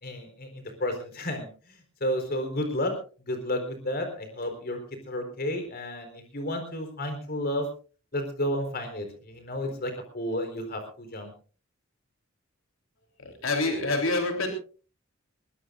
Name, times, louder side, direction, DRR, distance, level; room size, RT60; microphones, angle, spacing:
voice 1, 0.0-2.9 3.3-4.8 5.1-7.7 8.1-11.3, left 1 dB, 50° left, 5 dB, 4.3 m, -32 dB
voice 2, 13.2-14.5, left 2 dB, 75° left, 4 dB, 3.5 m, -27 dB
21.5 x 20.0 x 2.6 m, 0.38 s
head